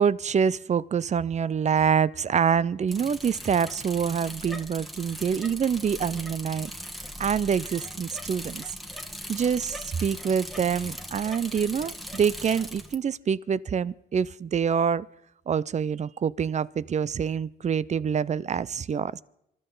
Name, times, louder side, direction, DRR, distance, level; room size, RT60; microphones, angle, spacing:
voice 1, 0.0-6.7 7.2-8.7 9.3-15.1 15.5-19.2, right 7 dB, 35° right, 0.5 m, -26 dB
Bicycle, 2.9-12.9, equal, ahead, 1.5 m, -39 dB
27.0 x 13.5 x 3.9 m
cardioid pair, 90°, 20 cm